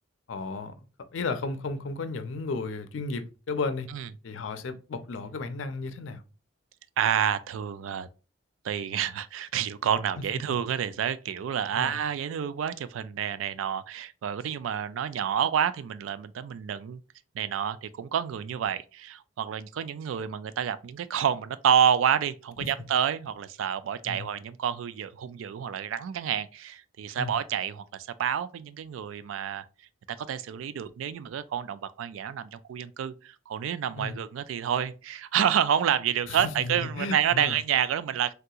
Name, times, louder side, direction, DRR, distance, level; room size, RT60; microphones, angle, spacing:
voice 1, 0.3-0.9 1.1-3.9 4.2-6.2 11.7-12.0 22.6-22.7 24.0-24.3 27.2-27.4 33.9-34.2 36.3-37.6, left 3 dB, 70° left, 0.5 m, -34 dB
voice 2, 7.0-8.1 8.6-17.0 17.4-29.6 30.1-38.3, right 8 dB, 90° right, 0.3 m, -29 dB
3.5 x 2.8 x 2.3 m
head